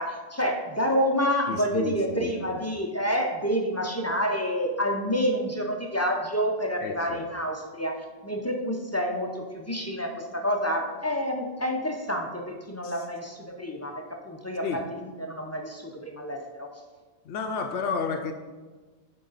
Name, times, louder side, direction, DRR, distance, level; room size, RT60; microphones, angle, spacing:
voice 1, 0.0-8.0 8.2-16.7, equal, 20° left, 2 dB, 0.5 m, -28 dB
voice 2, 1.5-2.3 6.8-7.2 12.8-12.9 14.6-14.8 17.3-18.3, left 5 dB, 85° left, 4 dB, 0.9 m, -31 dB
9.3 x 3.8 x 4.0 m, 1.3 s
omnidirectional pair, 1.1 m